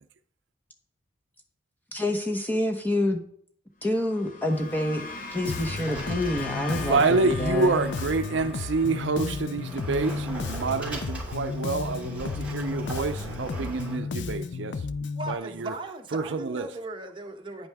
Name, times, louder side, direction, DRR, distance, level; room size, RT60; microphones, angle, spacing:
voice 1, 1.9-3.2 3.8-5.0 5.3-7.7, left 1 dB, 10° left, 1.0 m, -27 dB
sound 1, 3.8-12.3, left 4 dB, 45° left, 0.9 m, -42 dB
Sliding door, 4.5-14.0, right 2 dB, 5° right, 2.9 m, -41 dB
Bass guitar, 5.4-15.3, left 4 dB, 65° left, 0.4 m, -34 dB
voice 2, 6.7-15.7 16.1-16.7, right 3 dB, 70° right, 0.5 m, -28 dB
voice 3, 15.1-17.7, right 2 dB, 25° right, 1.1 m, -38 dB
9.7 x 8.7 x 3.5 m
head